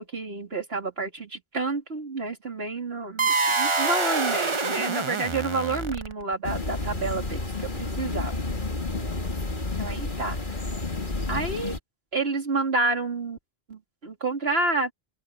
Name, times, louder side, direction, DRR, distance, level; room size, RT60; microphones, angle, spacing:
voice 1, 0.0-7.4 7.7-8.3 9.8-10.4 11.3-11.7 12.1-13.4 13.7-14.9, right 3 dB, 80° right, 3.4 m, -29 dB
sound 1, 3.2-6.3, right 4 dB, 30° right, 1.0 m, -26 dB
sound 2, 6.4-11.8, left 3 dB, 50° left, 2.5 m, -30 dB
open air
omnidirectional pair, 1.0 m